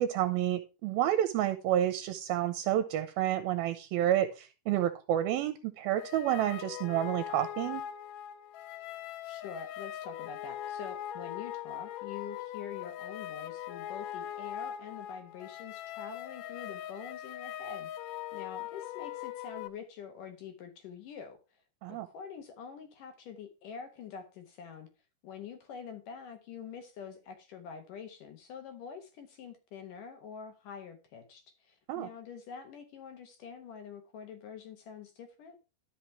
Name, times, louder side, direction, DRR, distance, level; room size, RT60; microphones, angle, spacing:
voice 1, 0.0-7.8 21.8-22.1 31.9-32.1, right 12 dB, 80° right, 2.4 m, -29 dB
sound 1, 6.0-19.7, left 11 dB, 80° left, 1.9 m, -41 dB
voice 2, 9.2-21.4 21.9-24.9 25.2-35.6, left 6 dB, 65° left, 2.5 m, -46 dB
12.5 x 5.8 x 4.4 m
omnidirectional pair, 4.5 m